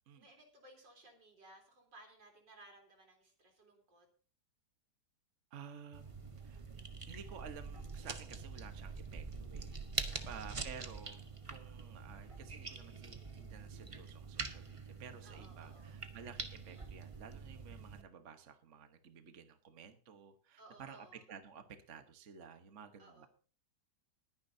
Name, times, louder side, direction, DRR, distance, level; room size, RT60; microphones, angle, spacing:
voice 1, 0.1-4.1 10.1-10.9 15.2-16.0 20.6-21.2 23.0-23.3, right 2 dB, 90° right, 2 dB, 4.4 m, -60 dB
voice 2, 5.5-6.6 7.1-23.3, right 7 dB, 45° right, 8 dB, 1.4 m, -53 dB
sound 1, 5.9-18.0, right 4 dB, 25° right, 0.7 m, -45 dB
21.0 x 9.7 x 2.7 m, 0.39 s
omnidirectional pair, 1.9 m